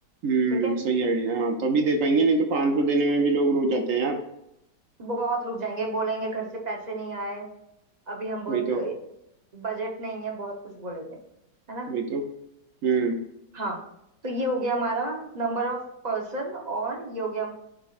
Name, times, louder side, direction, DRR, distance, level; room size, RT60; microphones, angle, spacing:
voice 1, 0.2-4.2 8.5-8.8 11.9-12.2 12.8-13.2, right 3 dB, 60° right, 5 dB, 0.9 m, -23 dB
voice 2, 5.0-7.5 8.1-8.9 9.5-11.2 11.7-11.9 13.5-13.8 14.2-17.5, right 2 dB, 30° right, 0 dB, 0.9 m, -30 dB
10.5 x 3.7 x 2.5 m, 0.82 s
omnidirectional pair, 2.0 m